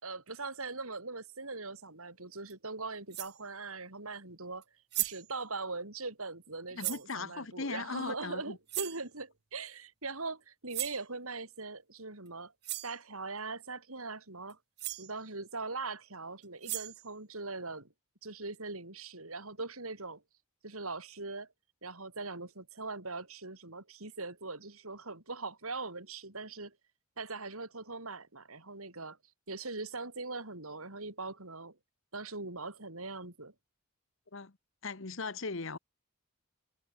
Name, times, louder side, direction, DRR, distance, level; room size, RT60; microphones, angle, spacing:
voice 1, 0.0-4.6 5.0-12.5 12.8-14.6 15.0-17.9 18.2-20.2 20.6-21.5 21.8-26.7 27.2-29.2 29.5-31.8 32.1-33.5, right 3 dB, 75° right, 5.1 m, -41 dB
sound 1, 2.5-2.6 3.1-3.4 4.6-4.7 4.9-5.3 6.8-7.1 8.7-9.0 10.7-11.0 12.3-12.4 12.6-13.0 14.5-14.6 14.8-15.1 16.4-17.1, right 17 dB, 50° right, 0.9 m, -37 dB
voice 2, 6.7-8.6 34.3-34.5 34.8-35.8, left 4 dB, 60° left, 1.2 m, -38 dB
head